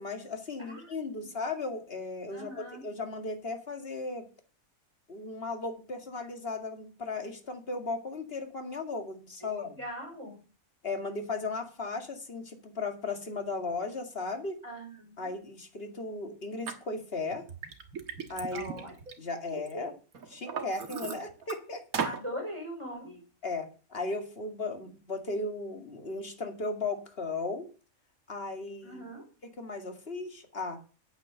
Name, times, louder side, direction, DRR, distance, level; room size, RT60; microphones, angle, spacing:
voice 1, 0.0-4.3 5.1-9.8 10.8-14.6 15.2-17.4 18.3-18.7 19.2-19.9 20.3-21.8 23.4-27.7 28.3-29.0 29.4-30.8, left 3 dB, 45° left, 5 dB, 2.4 m, -36 dB
voice 2, 0.6-0.9 2.3-2.8 9.4-10.4 14.6-15.3 18.5-18.9 19.5-19.9 22.0-23.2 28.8-29.2, equal, 20° right, 1 dB, 5.3 m, -41 dB
Liquid, 16.7-16.8 17.3-19.7 20.1-21.6 21.9-22.2, right 6 dB, 80° right, 1.9 m, -36 dB
9.0 x 9.0 x 6.9 m, 0.37 s
omnidirectional pair, 1.5 m